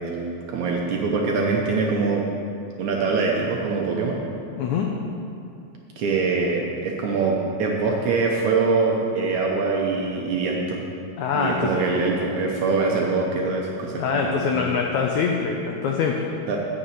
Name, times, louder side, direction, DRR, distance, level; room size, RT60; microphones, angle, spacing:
voice 1, 0.0-2.2 2.8-4.2 6.0-10.8 11.3-14.6 16.5-16.6, right 4 dB, 70° right, -1 dB, 1.9 m, -24 dB
voice 2, 4.6-4.9 11.2-11.9 13.9-16.3, left 6 dB, 90° left, 1 dB, 1.6 m, -24 dB
9.9 x 5.9 x 8.3 m, 2.6 s
omnidirectional pair, 4.3 m